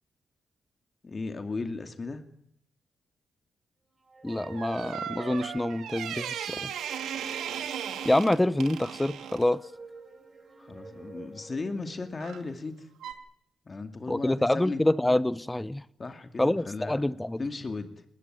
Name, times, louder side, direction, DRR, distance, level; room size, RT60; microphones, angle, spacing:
voice 1, 1.0-2.2 10.6-12.9 13.7-14.8 16.0-17.1 17.4-18.0, left 3 dB, 35° left, 2.5 m, -36 dB
sound 1, 4.0-12.2, right 3 dB, 35° right, 4.6 m, -48 dB
voice 2, 4.2-6.7 8.0-9.6 14.1-15.8 16.4-17.4, left 1 dB, 10° left, 0.9 m, -26 dB
sound 2, 4.3-9.5 12.2-12.5 13.0-13.1, right 9 dB, 90° right, 2.5 m, -37 dB
21.0 x 19.5 x 9.3 m
cardioid pair, 70°, 0 cm